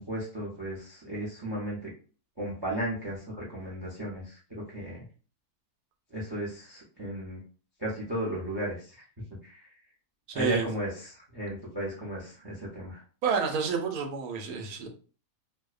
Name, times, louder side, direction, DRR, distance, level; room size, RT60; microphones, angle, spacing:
voice 1, 0.0-1.9 2.4-5.0 6.1-7.4 7.8-9.0 9.4-9.7 10.3-13.0, right 1 dB, 40° right, 0.3 m, -35 dB
voice 2, 10.3-10.6 13.2-14.9, right 6 dB, 80° right, 1.1 m, -29 dB
2.6 x 2.1 x 2.3 m
omnidirectional pair, 1.6 m